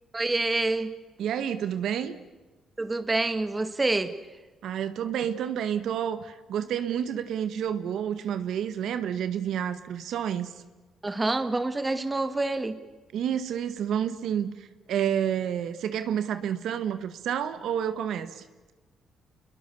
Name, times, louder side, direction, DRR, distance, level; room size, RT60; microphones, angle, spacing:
voice 1, 0.1-0.9 2.8-4.1 11.0-12.8, right 2 dB, 20° right, 11 dB, 2.0 m, -27 dB
voice 2, 1.2-2.1 4.6-10.5 13.1-18.4, right 9 dB, 75° right, 11 dB, 1.7 m, -29 dB
29.0 x 22.0 x 7.0 m, 1.2 s
cardioid pair, 90°, 0 cm